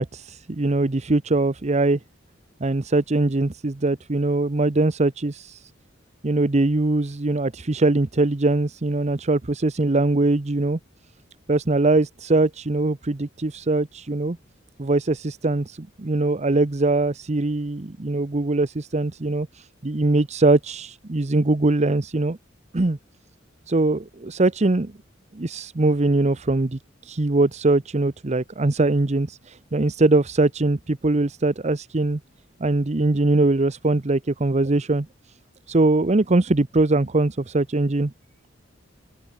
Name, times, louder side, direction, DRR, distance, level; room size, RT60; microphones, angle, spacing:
voice 1, 0.0-2.0 2.6-5.7 6.2-10.8 11.5-14.4 14.8-22.4 22.7-23.0 23.7-24.9 25.3-32.2 32.6-35.1 35.7-38.1, right 2 dB, 35° right, 0.8 m, -22 dB
open air
head